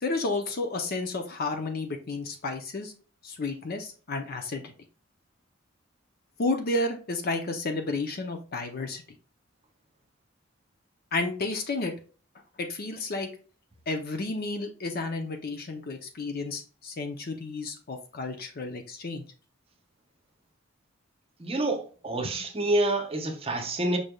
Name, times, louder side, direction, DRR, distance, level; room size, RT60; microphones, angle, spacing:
voice 1, 0.0-2.9 3.2-4.7 6.4-9.0 11.1-11.9 12.6-13.3 13.9-19.2 22.4-22.5, left 3 dB, 50° left, 0.6 m, -31 dB
voice 2, 21.4-24.0, right 2 dB, 30° right, 0.8 m, -27 dB
5.3 x 3.3 x 2.3 m
head